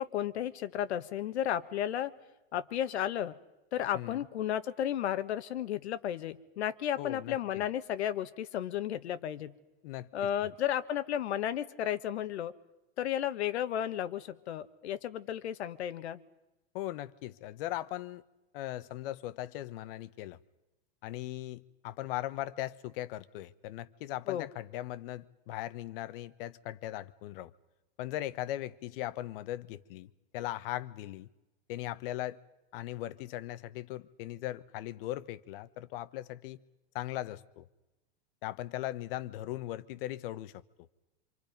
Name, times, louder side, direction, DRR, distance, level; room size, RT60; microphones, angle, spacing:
voice 1, 0.0-2.1 2.5-3.4 3.7-9.5 10.1-12.5 13.0-16.2 24.3-24.5, left 11 dB, 85° left, 1.4 m, -33 dB
voice 2, 3.9-4.3 7.0-7.6 9.8-10.1 16.7-18.2 18.5-20.4 21.0-27.5 28.0-31.3 31.7-32.4 32.7-36.6 36.9-37.7 38.4-40.6, left 14 dB, 60° left, 1.1 m, -39 dB
26.5 x 26.0 x 5.3 m
supercardioid pair, 135°, 32 cm